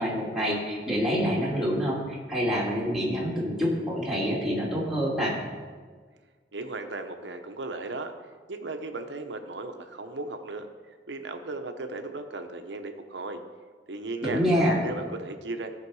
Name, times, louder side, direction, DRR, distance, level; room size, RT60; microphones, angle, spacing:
voice 1, 0.0-5.4 14.2-14.8, equal, ahead, -5 dB, 2.3 m, -26 dB
voice 2, 6.5-8.1 8.5-13.4 13.9-14.4 14.8-15.7, right 2 dB, 80° right, 6 dB, 0.9 m, -36 dB
15.0 x 5.8 x 4.8 m, 1.5 s
head